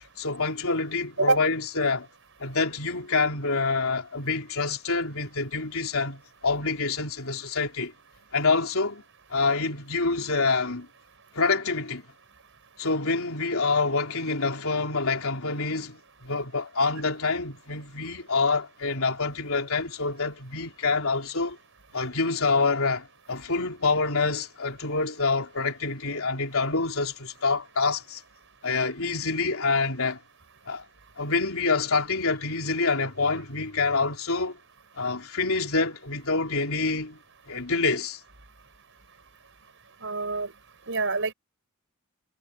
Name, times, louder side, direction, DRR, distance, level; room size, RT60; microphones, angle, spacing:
voice 1, 0.2-2.1 2.4-7.9 8.3-9.0 9.3-10.9 11.3-12.1 12.8-21.6 21.9-28.2 28.6-30.2 30.7-30.8 31.2-34.6 35.0-37.2 37.5-38.2, left 4 dB, 70° left, 4.3 m, -26 dB
voice 2, 40.0-40.5 40.9-41.3, right 3 dB, 60° right, 6.9 m, -25 dB
head